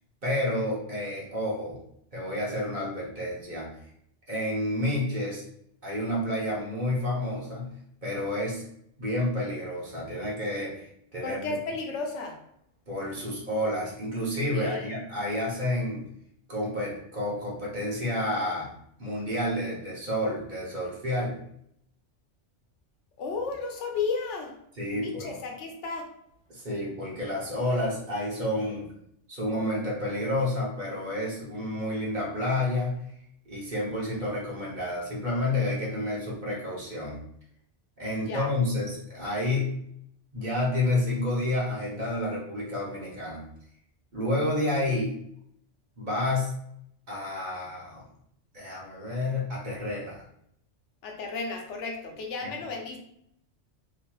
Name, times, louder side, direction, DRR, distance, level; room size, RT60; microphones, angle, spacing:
voice 1, 0.2-1.8 2.1-3.7 4.3-5.4 5.8-7.7 8.0-8.6 9.0-11.6 12.9-16.0 16.5-18.7 19.0-21.3 24.8-25.4 26.5-28.9 29.3-32.9 33.4-37.2 38.0-39.7 40.3-43.4 44.1-45.1 46.0-46.5 47.1-48.1 48.5-50.2, left 1 dB, 45° right, -5 dB, 1.0 m, -30 dB
voice 2, 11.2-12.3 14.5-14.8 23.2-24.5 25.0-26.1 38.3-38.5 51.0-53.0, left 4 dB, 80° left, 2 dB, 0.9 m, -33 dB
3.1 x 2.8 x 2.3 m, 0.72 s
omnidirectional pair, 1.2 m